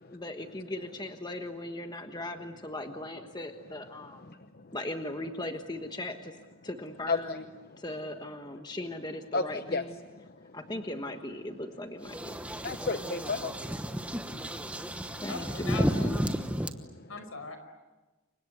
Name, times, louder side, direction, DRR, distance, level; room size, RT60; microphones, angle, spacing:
voice 1, 0.1-4.4 4.7-6.3 6.6-7.5 7.8-10.0 10.5-12.4 15.2-16.2, left 1 dB, 20° left, 6 dB, 1.3 m, -38 dB
voice 2, 7.1-7.4 9.3-9.8 12.6-13.7 14.5-14.9 17.0-17.1, left 4 dB, 45° left, 9 dB, 0.8 m, -32 dB
sound 1, 12.0-16.7, equal, 5° right, 1.1 m, -32 dB
voice 3, 15.3-16.1 17.1-17.6, left 3 dB, 75° left, 8 dB, 5.1 m, -39 dB
29.5 x 24.5 x 8.0 m, 1.2 s
head